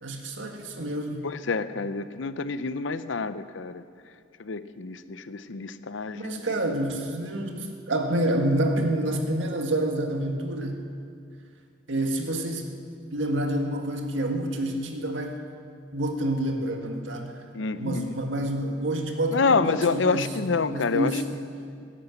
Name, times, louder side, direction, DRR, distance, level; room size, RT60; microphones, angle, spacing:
voice 1, 0.0-1.3 6.1-10.8 11.9-12.7 13.1-15.4 15.9-17.4 17.8-20.3 20.6-21.2, right 1 dB, 80° right, 3 dB, 1.7 m, -28 dB
voice 2, 1.2-3.8 4.4-6.4 17.5-18.2 19.3-21.2, left 4 dB, 80° left, 13 dB, 0.7 m, -27 dB
16.5 x 9.9 x 8.1 m, 2.3 s
head